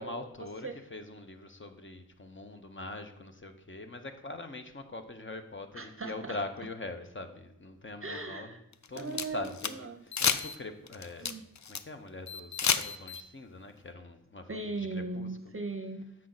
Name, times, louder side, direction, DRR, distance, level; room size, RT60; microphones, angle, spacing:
voice 1, 0.0-8.6 8.9-9.7 10.0-11.3 11.7-15.3, left 2 dB, 35° left, 6 dB, 0.8 m, -43 dB
voice 2, 5.7-6.4 8.0-8.6 8.9-10.0 11.2-11.4 14.5-16.1, right 3 dB, 40° right, 6 dB, 0.6 m, -38 dB
sound 1, 8.7-9.7 10.1-10.6 10.9-11.8 12.3-13.2, left 6 dB, 55° left, 0.5 m, -30 dB
7.6 x 5.8 x 3.9 m, 0.82 s
wide cardioid pair, 60°, 33 cm